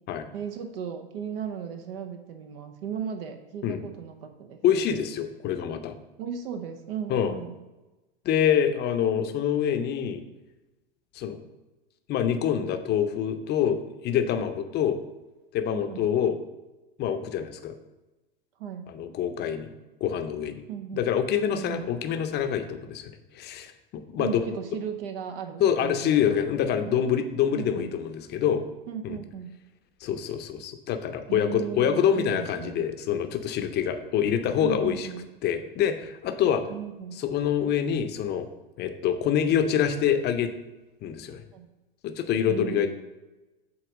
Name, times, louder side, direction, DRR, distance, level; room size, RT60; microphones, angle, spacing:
voice 1, 0.3-4.6 6.2-7.6 15.7-16.1 18.6-18.9 20.7-21.0 21.5-21.9 24.2-26.4 26.8-27.1 27.5-27.9 28.9-29.6 31.3-32.9 34.6-35.2 36.7-37.2 41.5-41.7 42.5-42.9, right 8 dB, 70° right, 5 dB, 0.8 m, -36 dB
voice 2, 4.6-5.9 7.1-7.3 8.2-10.2 11.1-11.4 12.1-13.8 14.0-15.0 15.5-16.4 17.0-17.7 18.9-19.7 20.0-20.6 20.9-24.5 25.6-28.6 29.0-29.2 30.0-35.1 35.4-36.6 37.2-38.5 38.8-40.5 41.0-41.4 42.0-42.9, left 9 dB, 35° left, 8 dB, 0.6 m, -26 dB
7.9 x 2.9 x 5.0 m, 1.1 s
hypercardioid pair, 100°, 31 cm